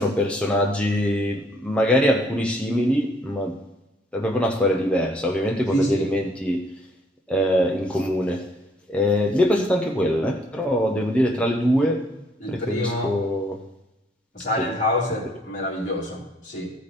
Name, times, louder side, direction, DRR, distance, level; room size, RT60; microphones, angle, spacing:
voice 1, 0.0-3.5 4.1-6.6 7.3-8.4 8.9-12.0 12.5-13.6 14.6-14.7, equal, 5° left, -1 dB, 0.7 m, -23 dB
voice 2, 5.7-6.1 12.4-13.2 14.3-16.7, left 1 dB, 45° left, -5 dB, 2.8 m, -26 dB
14.5 x 5.2 x 4.2 m, 0.99 s
head